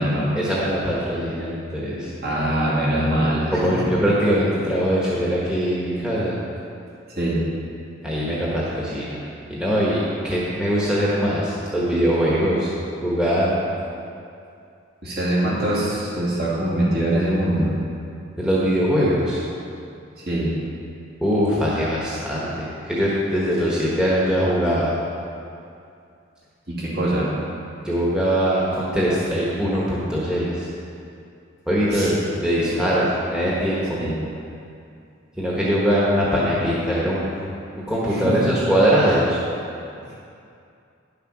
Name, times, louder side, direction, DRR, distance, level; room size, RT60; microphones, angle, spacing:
voice 1, 0.3-2.1 3.5-6.4 8.0-9.2 9.5-12.7 13.0-13.6 18.4-19.4 21.2-24.9 27.8-30.7 31.7-32.2 32.4-34.0 35.4-37.3 37.7-39.4, equal, 5° right, -7 dB, 1.3 m, -22 dB
voice 2, 2.2-3.7 7.2-7.5 15.0-17.7 20.3-20.5 26.7-27.3 31.9-32.1 32.6-33.0 33.9-34.2 38.1-38.5, right 1 dB, 50° right, -7 dB, 2.8 m, -23 dB
10.0 x 6.8 x 6.1 m, 2.5 s
head